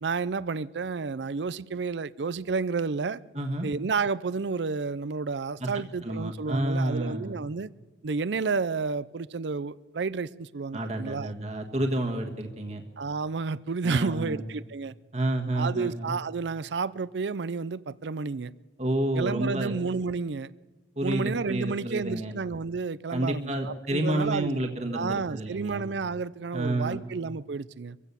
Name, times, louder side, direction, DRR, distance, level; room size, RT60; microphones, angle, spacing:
voice 1, 0.0-3.2 3.6-7.7 8.0-11.3 13.0-14.9 15.5-18.5 19.2-20.5 21.0-24.5 24.9-28.0, right 4 dB, 85° right, 0.5 m, -31 dB
voice 2, 3.3-3.7 5.6-5.7 6.0-7.4 10.7-12.8 13.8-14.5 15.1-16.1 18.8-19.7 21.0-22.3 23.1-25.9 26.5-27.1, right 1 dB, 40° right, 1.5 m, -29 dB
24.5 x 15.5 x 7.0 m
head